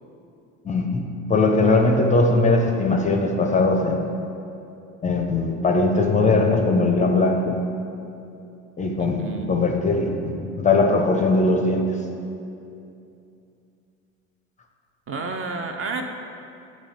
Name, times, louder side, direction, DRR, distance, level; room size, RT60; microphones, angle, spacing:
voice 1, 0.6-4.0 5.0-7.6 8.8-12.0, left 3 dB, 20° left, 3 dB, 0.4 m, -20 dB
voice 2, 9.0-9.6 15.1-16.0, right 4 dB, 35° right, 4 dB, 0.5 m, -30 dB
8.3 x 3.1 x 3.9 m, 2.7 s
hypercardioid pair, 65°, 40 cm